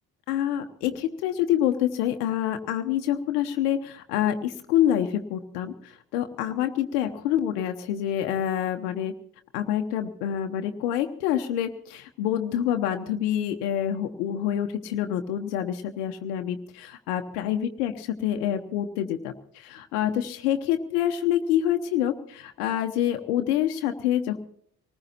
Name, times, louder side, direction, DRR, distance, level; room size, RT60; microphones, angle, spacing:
voice 1, 0.3-9.1 9.5-24.4, left 11 dB, 80° left, 5 dB, 1.0 m, -27 dB
24.5 x 19.5 x 2.9 m, 0.64 s
hypercardioid pair, 45°, 46 cm